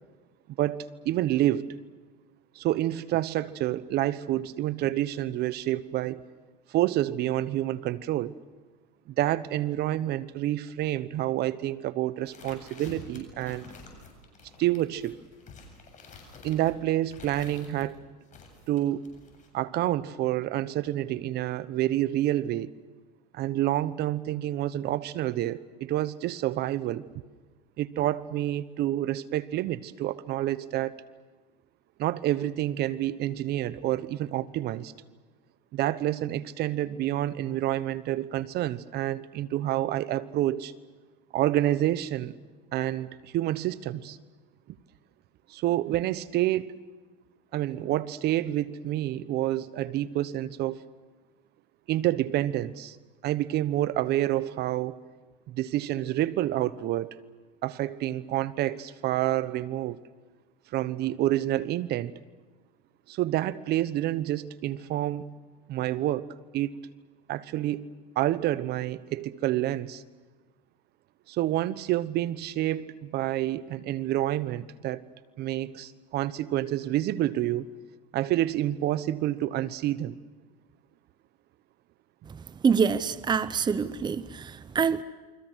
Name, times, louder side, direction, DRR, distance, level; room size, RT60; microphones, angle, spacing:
voice 1, 0.6-1.7 2.5-6.2 6.7-8.3 9.1-13.6 14.6-15.2 16.4-18.0 18.7-19.1 19.5-22.7 23.3-27.1 27.8-31.0 32.0-34.9 35.7-40.7 41.3-42.3 42.7-44.2 44.7-44.8 45.5-46.8 47.5-50.8 51.9-53.0 53.2-55.0 55.5-57.1 57.6-60.0 60.7-62.1 63.1-65.3 65.7-66.7 67.3-67.9 68.2-70.0 71.3-75.0 75.4-77.7 78.1-80.2, right 14 dB, 50° right, 1.1 m, -28 dB
sound 1, 12.2-17.9 18.3-19.5, left 4 dB, 35° left, 7.7 m, -49 dB
voice 2, 82.6-85.0, right 6 dB, 20° right, 0.8 m, -25 dB
29.0 x 24.5 x 6.4 m
supercardioid pair, 100°, 21 cm